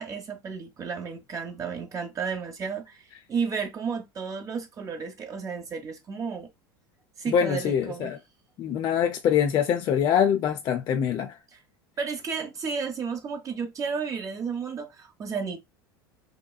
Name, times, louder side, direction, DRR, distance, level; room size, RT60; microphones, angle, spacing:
voice 1, 0.0-6.5 7.2-8.2 11.5-11.6 12.0-15.6, right 5 dB, 25° right, 0.7 m, -32 dB
voice 2, 7.3-8.2 8.6-11.3, left 8 dB, 40° left, 0.4 m, -24 dB
2.9 x 2.2 x 2.2 m
hypercardioid pair, 80°, 12 cm